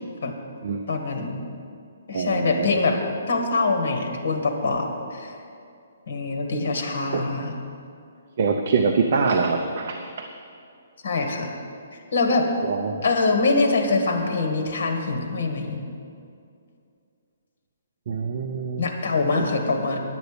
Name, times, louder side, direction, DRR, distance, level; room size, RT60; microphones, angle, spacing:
voice 1, 0.9-1.4 2.1-3.0 3.3-5.4 6.1-7.6 11.0-11.5 11.9-12.5 13.0-15.8 18.8-20.0, left 3 dB, 50° left, 4 dB, 1.7 m, -24 dB
voice 2, 2.1-3.0 7.1-7.3 8.4-10.3 12.6-13.0 18.1-18.8 19.4-19.5, right 5 dB, 35° right, 4 dB, 0.6 m, -25 dB
10.5 x 8.0 x 6.8 m, 2.4 s
hypercardioid pair, 175°, 0 cm